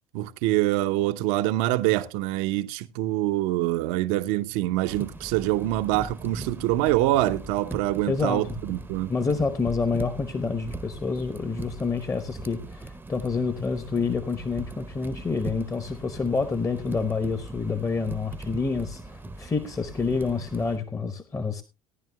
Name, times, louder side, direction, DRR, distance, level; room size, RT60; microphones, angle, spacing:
voice 1, 0.1-9.1, right 16 dB, 55° right, 0.7 m, -25 dB
sound 1, 4.9-20.8, right 3 dB, 10° right, 0.7 m, -40 dB
voice 2, 8.1-8.4 9.1-21.6, left 4 dB, 15° left, 0.9 m, -28 dB
17.5 x 10.5 x 2.2 m
figure-of-eight pair, 60°, 18 cm